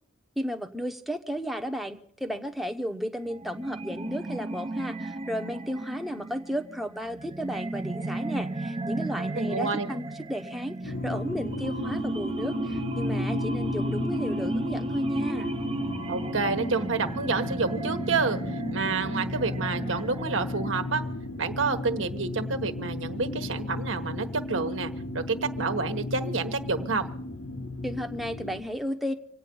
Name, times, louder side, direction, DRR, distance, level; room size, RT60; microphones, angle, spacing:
voice 1, 0.4-15.5 27.8-29.1, equal, ahead, 4 dB, 0.8 m, -33 dB
sound 1, 3.3-21.2, right 2 dB, 30° right, 0.6 m, -34 dB
voice 2, 9.3-9.9 16.1-21.0 21.4-27.1, right 4 dB, 80° right, 7 dB, 1.2 m, -29 dB
sound 2, 10.8-28.6, left 2 dB, 75° left, 1.1 m, -35 dB
26.0 x 8.9 x 5.3 m, 0.64 s
head